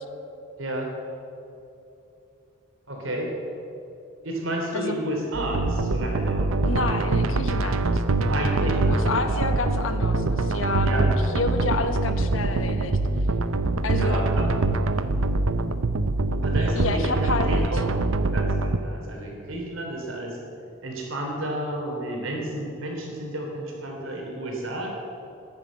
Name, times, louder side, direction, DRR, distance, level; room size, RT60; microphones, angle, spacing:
voice 1, 0.6-0.9 2.9-3.4 4.2-6.8 8.3-9.5 10.8-11.1 13.9-14.5 14.9-15.2 16.4-17.8 18.3-20.4 20.8-24.9, right 1 dB, 65° right, 0 dB, 3.6 m, -31 dB
voice 2, 4.7-5.0 6.6-8.0 8.6-13.0 13.8-14.2 16.7-17.8, left 3 dB, 70° left, 8 dB, 1.2 m, -29 dB
sound 1, 5.3-18.8, right 2 dB, 85° right, 0.7 m, -24 dB
14.0 x 10.5 x 7.7 m, 2.8 s
head